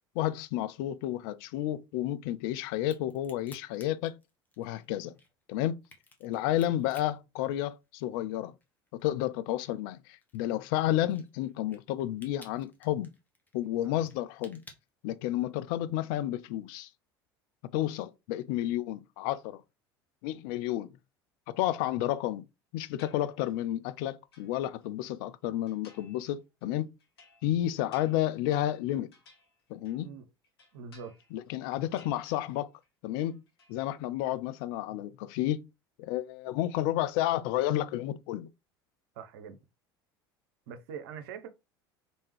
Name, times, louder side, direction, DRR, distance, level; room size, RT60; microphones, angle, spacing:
voice 1, 0.2-4.2 4.6-5.1 5.5-5.8 6.2-8.5 8.9-13.1 13.5-14.6 15.0-16.9 17.7-19.6 20.2-20.9 21.5-22.4 22.7-26.9 27.4-29.1 29.7-30.1 31.3-32.7 33.0-33.4 33.7-35.7 36.0-38.5, left 13 dB, 60° left, 0.4 m, -31 dB
Crack, 2.8-8.3 8.6-15.6, left 2 dB, 15° left, 1.0 m, -57 dB
sound 1, 23.0-23.7 24.1-25.1 25.7-26.3 26.6-30.1 30.4-31.5 31.8-32.9 33.1-33.8, left 4 dB, 75° left, 0.9 m, -60 dB
voice 2, 30.7-31.1 39.1-39.6 40.7-41.5, right 6 dB, 65° right, 0.6 m, -43 dB
3.4 x 2.7 x 3.1 m
figure-of-eight pair, 70°, 13 cm